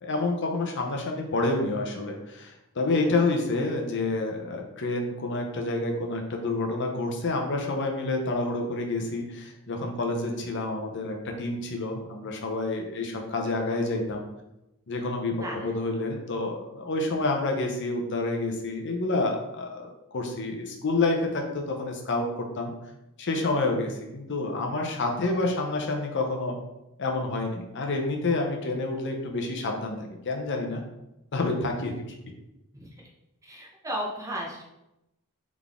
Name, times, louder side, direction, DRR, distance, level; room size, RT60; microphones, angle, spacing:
voice 1, 0.0-14.2 14.9-15.3 15.6-22.7 23.2-26.6 27.0-30.8 31.3-32.0, left 2 dB, 55° left, 2 dB, 0.7 m, -28 dB
voice 2, 15.4-15.7 32.7-32.9 33.4-34.6, right 1 dB, 15° right, -2 dB, 0.8 m, -35 dB
3.8 x 3.6 x 3.5 m, 0.90 s
head